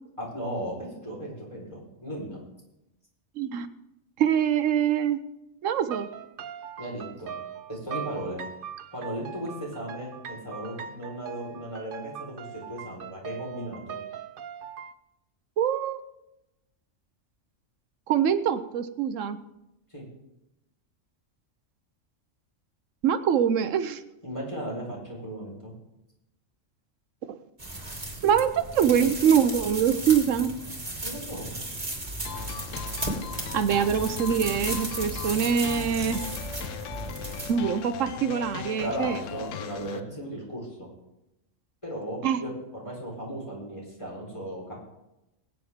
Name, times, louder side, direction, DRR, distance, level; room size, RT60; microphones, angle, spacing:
voice 1, 0.2-2.4 6.8-7.4 7.7-8.4 8.9-14.0 19.9-20.1 24.2-25.7 31.0-31.5 38.8-40.9 41.8-44.7, equal, 25° left, -3 dB, 4.3 m, -36 dB
voice 2, 3.4-3.7 4.2-5.2 5.6-6.1 15.6-16.0 18.1-19.4 23.0-24.0 27.2-27.4 28.2-30.5 33.5-36.2 37.5-39.2 42.2-42.4, right 8 dB, 90° right, 11 dB, 1.1 m, -24 dB
sound 1, 5.8-14.9, right 8 dB, 55° right, 0.7 m, -40 dB
sound 2, 27.6-37.5, right 2 dB, 30° right, 2.3 m, -35 dB
sound 3, 32.3-40.0, left 8 dB, 85° left, 1.1 m, -38 dB
21.0 x 9.0 x 3.6 m, 0.91 s
omnidirectional pair, 1.3 m